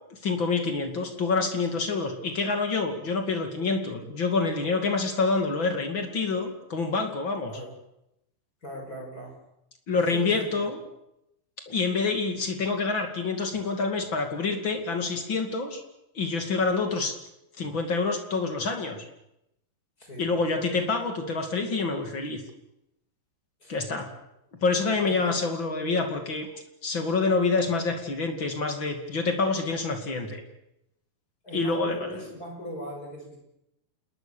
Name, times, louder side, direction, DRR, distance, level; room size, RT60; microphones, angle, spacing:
voice 1, 0.1-7.5 9.9-10.8 11.7-15.8 16.1-17.1 17.6-19.0 20.2-22.4 23.7-24.1 24.6-26.5 26.8-30.4 31.5-32.2, left 4 dB, 35° left, 5 dB, 2.2 m, -27 dB
voice 2, 8.6-9.3 10.0-10.6 13.5-13.6 20.0-20.3 23.6-23.9 25.1-25.4 31.4-33.4, left 1 dB, 20° left, 2 dB, 6.0 m, -39 dB
28.0 x 20.5 x 6.9 m, 0.84 s
omnidirectional pair, 5.2 m